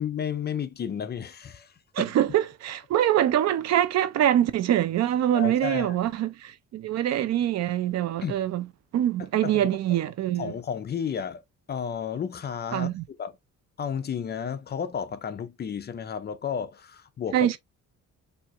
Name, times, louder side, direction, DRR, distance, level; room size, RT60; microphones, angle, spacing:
voice 1, 0.0-2.1 5.3-6.0 8.2-8.3 9.2-9.7 10.4-11.4 11.7-12.9 13.2-13.3 13.8-17.6, left 7 dB, 35° left, 0.5 m, -32 dB
voice 2, 1.9-8.7 8.9-10.5 12.7-13.0 17.3-17.6, right 11 dB, 60° right, 0.5 m, -24 dB
4.4 x 2.8 x 2.4 m
cardioid pair, 140°, 30 cm